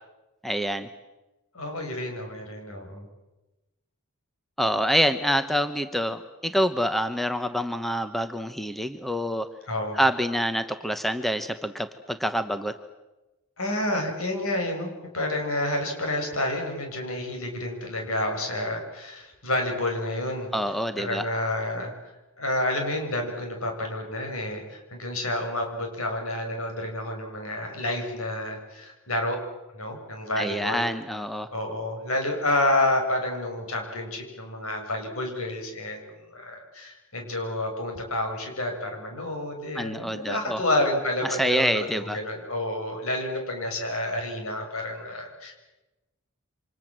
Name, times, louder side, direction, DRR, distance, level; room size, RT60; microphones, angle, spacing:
voice 1, 0.4-0.9 4.6-9.5 9.9-12.8 20.5-21.2 30.4-31.5 39.7-40.6 41.2-42.2, equal, ahead, 9 dB, 1.0 m, -26 dB
voice 2, 1.5-3.1 9.7-10.0 13.6-20.5 20.9-21.9 22.4-29.4 29.7-30.9 31.5-45.5, left 1 dB, 70° left, 3 dB, 7.3 m, -29 dB
29.0 x 25.5 x 7.6 m, 1.1 s
head